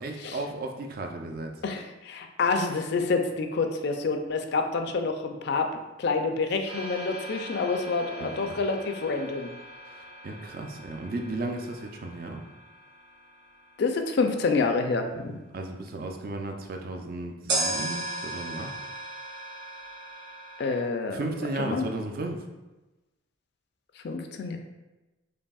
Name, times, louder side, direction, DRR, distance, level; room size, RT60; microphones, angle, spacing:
voice 1, 0.0-1.5 8.2-8.5 9.9-12.4 15.5-18.7 21.1-22.5, right 2 dB, 45° right, 3 dB, 0.4 m, -35 dB
voice 2, 1.6-5.7 6.0-9.5 13.8-15.4 20.6-21.2 21.6-21.8 24.0-24.6, left 4 dB, 55° left, 5 dB, 0.4 m, -27 dB
sound 1, 6.7-14.6 17.5-20.8, right 2 dB, 65° right, 1.4 m, -37 dB
5.2 x 2.7 x 2.3 m, 1.1 s
head